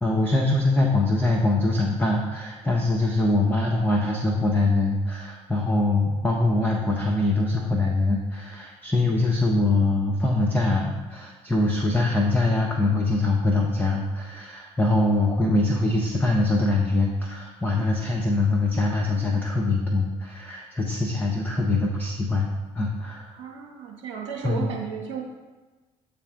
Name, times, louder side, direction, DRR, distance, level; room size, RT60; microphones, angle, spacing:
voice 1, 0.0-22.5 22.8-23.3 24.4-24.7, left 2 dB, 10° left, 0 dB, 0.9 m, -23 dB
voice 2, 23.3-25.2, right 6 dB, 80° right, -1 dB, 0.7 m, -34 dB
8.3 x 3.3 x 3.7 m, 1.2 s
hypercardioid pair, 55°, 16 cm